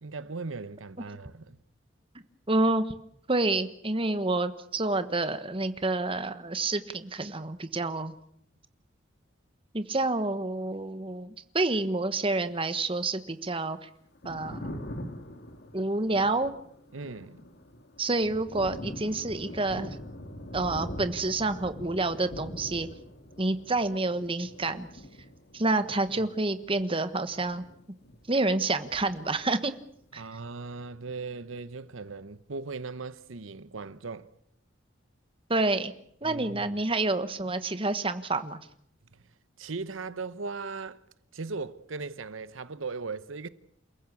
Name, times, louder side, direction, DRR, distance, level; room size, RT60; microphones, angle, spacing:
voice 1, 0.0-1.6 16.9-17.4 26.1-26.3 30.1-34.3 36.2-36.8 39.6-41.0 41.3-43.5, right 4 dB, 85° right, 0.9 m, -38 dB
voice 2, 2.5-2.9 3.3-8.1 9.7-13.9 14.2-14.8 15.7-16.5 18.0-20.0 20.5-22.9 23.4-24.9 25.5-27.6 28.3-29.7 30.1-30.2 35.5-35.9 36.2-38.6, right 2 dB, 25° right, 1.3 m, -28 dB
Thunder, 14.0-28.5 28.7-30.0, equal, 55° left, 2.2 m, -43 dB
28.5 x 15.5 x 8.4 m
head